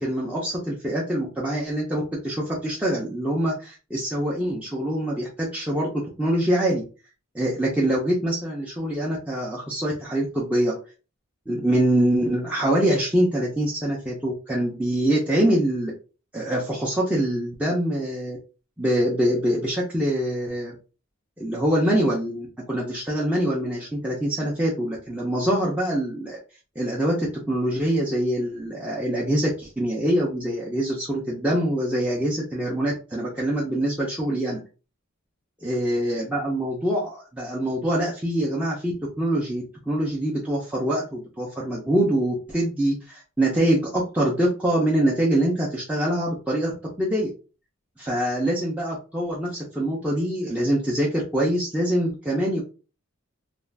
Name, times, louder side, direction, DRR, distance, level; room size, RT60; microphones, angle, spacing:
voice 1, 0.0-6.8 7.3-10.7 11.5-15.9 16.3-18.4 18.8-20.7 21.4-26.4 26.8-34.6 35.6-47.3 48.0-52.6, right 1 dB, 5° right, -5 dB, 0.5 m, -24 dB
2.4 x 2.2 x 3.2 m, 0.34 s
head